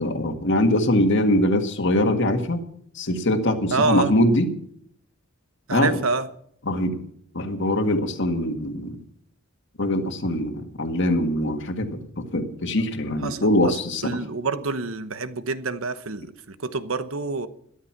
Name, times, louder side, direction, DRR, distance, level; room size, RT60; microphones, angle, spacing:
voice 1, 0.0-2.6 3.0-4.5 5.7-6.0 6.7-7.0 7.3-9.0 9.8-14.2, left 1 dB, 60° left, 1.8 m, -22 dB
voice 2, 3.7-4.1 5.7-6.3 13.2-17.5, right 3 dB, 70° right, 1.1 m, -27 dB
13.5 x 13.0 x 6.0 m
head